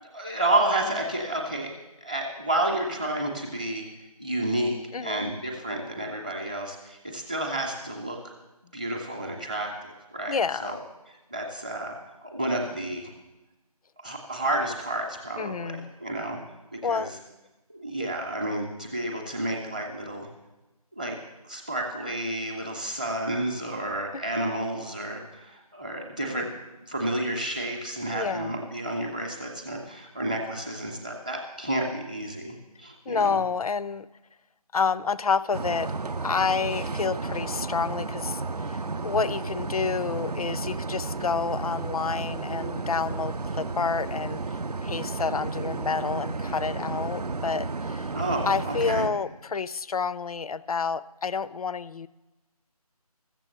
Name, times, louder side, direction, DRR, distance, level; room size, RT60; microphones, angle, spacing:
voice 1, 0.0-1.7 2.0-3.9 4.2-8.2 8.6-10.8 11.1-12.0 12.2-13.1 14.0-16.4 16.7-17.1 17.7-20.3 21.0-21.2 21.5-26.6 26.9-33.4 48.1-49.1, right 1 dB, 10° right, -1 dB, 0.7 m, -30 dB
voice 2, 4.9-5.3 10.3-10.8 15.4-15.9 16.8-17.1 18.0-18.1 24.1-24.2 26.4-26.5 28.1-28.6 33.1-34.1 34.7-35.9 36.2-44.4 44.8-48.1 48.5-52.1, left 5 dB, 65° left, 18 dB, 0.4 m, -29 dB
sound 1, 35.5-49.1, right 3 dB, 80° right, 0.6 m, -32 dB
14.0 x 7.5 x 6.6 m, 1.1 s
figure-of-eight pair, 160°, 20 cm